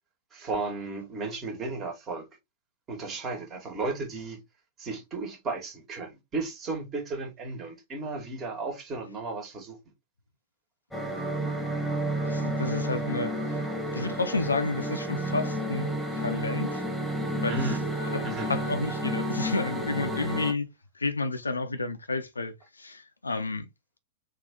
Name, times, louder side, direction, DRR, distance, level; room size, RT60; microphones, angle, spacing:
voice 1, 0.3-2.3 2.9-4.4 4.8-9.8 17.5-17.8 18.2-18.6, right 3 dB, 30° right, 1.9 m, -34 dB
sound 1, 10.9-20.5, equal, ahead, 1.4 m, -31 dB
voice 2, 12.2-13.6 13.9-16.8 17.3-20.7 20.9-23.7, left 3 dB, 85° left, 0.6 m, -31 dB
3.8 x 2.7 x 3.6 m
figure-of-eight pair, 100°, 0 cm